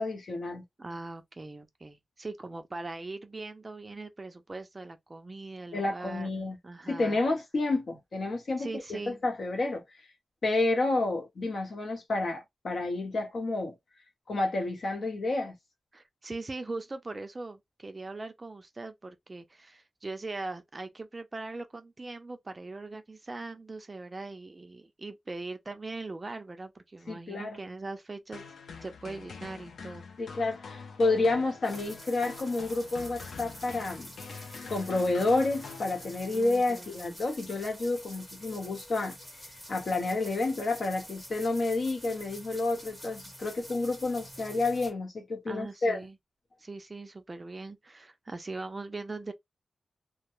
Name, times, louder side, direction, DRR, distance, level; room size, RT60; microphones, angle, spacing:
voice 1, 0.0-0.6 5.7-6.6 6.9-9.8 10.4-13.7 14.3-15.5 27.1-27.6 30.2-34.1 34.7-39.2 39.7-46.0, left 2 dB, 55° left, 1.0 m, -30 dB
voice 2, 0.8-7.2 8.6-9.2 15.9-28.4 28.8-30.0 36.3-37.2 45.5-46.2 46.6-49.3, right 3 dB, 30° right, 0.4 m, -41 dB
sound 1, 28.3-36.4, left 5 dB, 85° left, 0.5 m, -45 dB
sound 2, 31.6-44.9, equal, 15° left, 1.1 m, -47 dB
2.3 x 2.1 x 3.0 m
wide cardioid pair, 110°, 0 cm